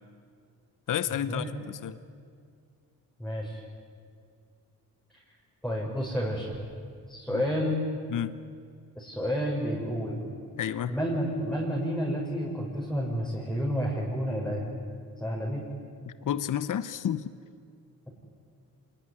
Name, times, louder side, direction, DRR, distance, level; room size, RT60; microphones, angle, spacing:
voice 1, 0.9-2.0 7.3-7.4 8.1-8.3 10.6-10.9 16.1-17.3, left 10 dB, 60° left, 14 dB, 0.9 m, -31 dB
voice 2, 3.2-3.6 5.6-6.6 7.1-7.9 9.0-10.2 10.9-14.7 15.2-15.6, equal, ahead, -4 dB, 5.6 m, -30 dB
26.0 x 20.5 x 10.0 m, 2.3 s
cardioid pair, 80°, 36 cm